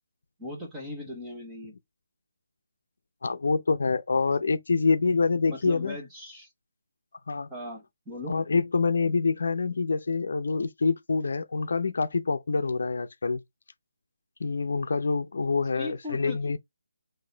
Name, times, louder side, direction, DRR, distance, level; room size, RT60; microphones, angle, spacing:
voice 1, 0.4-1.7 5.5-6.5 7.5-8.3 15.8-16.4, left 2 dB, 5° right, 1.0 m, -38 dB
voice 2, 3.2-6.0 7.3-7.5 8.3-13.4 14.4-16.6, left 4 dB, 60° left, 0.5 m, -26 dB
4.0 x 2.7 x 3.9 m
hypercardioid pair, 170°, 0 cm